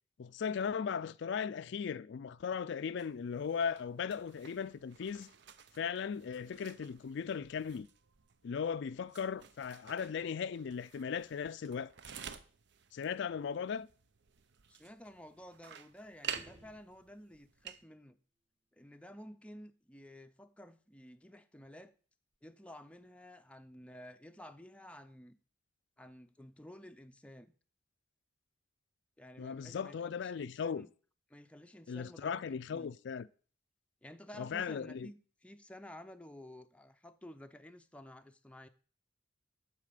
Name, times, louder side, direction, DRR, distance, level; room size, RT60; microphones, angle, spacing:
voice 1, 0.2-5.3 5.8-7.9 8.4-11.9 12.9-13.9 29.4-30.8 31.9-33.3 34.4-35.1, left 6 dB, 65° left, 0.4 m, -37 dB
sound 1, 3.0-17.8, right 8 dB, 65° right, 0.7 m, -51 dB
voice 2, 14.7-18.2 18.7-21.9 22.4-25.4 26.0-27.5 29.2-30.9 31.3-32.9 34.0-38.7, left 1 dB, 5° left, 0.5 m, -53 dB
sound 2, 16.2-17.5 22.3-22.4, right 1 dB, 30° right, 1.3 m, -59 dB
10.5 x 4.3 x 6.6 m
head